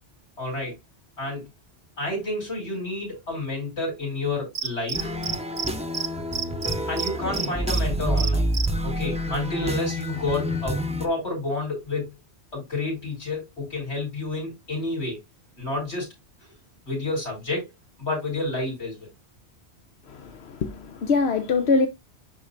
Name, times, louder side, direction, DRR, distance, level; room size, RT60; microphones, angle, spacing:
voice 1, 0.4-0.7 1.2-1.4 2.0-5.1 6.9-8.5 8.8-12.1 12.5-15.2 15.6-16.1 16.8-17.7 18.0-19.0, left 2 dB, 90° left, 5.7 m, -29 dB
Cricket, 4.6-5.7 5.9-6.1 6.3-7.8 8.2-8.7, right 6 dB, 55° right, 1.0 m, -28 dB
sound 1, 4.9-11.1, equal, 5° right, 0.7 m, -28 dB
voice 2, 20.1-21.9, left 4 dB, 75° left, 1.0 m, -23 dB
11.0 x 4.4 x 2.5 m
omnidirectional pair, 1.1 m